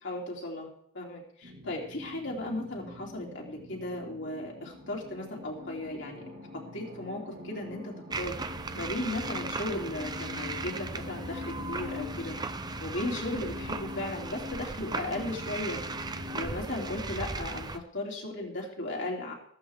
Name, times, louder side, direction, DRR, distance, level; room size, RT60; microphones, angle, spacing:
voice 1, 0.0-0.7 0.9-6.3 6.5-8.4 8.7-12.4 12.8-15.8 16.3-19.3, left 1 dB, 65° left, -2 dB, 3.0 m, -36 dB
sound 1, 1.4-17.0, left 4 dB, 90° right, 4.8 m, -44 dB
sound 2, 8.1-17.8, right 3 dB, 20° right, 0.6 m, -37 dB
14.0 x 14.0 x 3.6 m, 0.66 s
head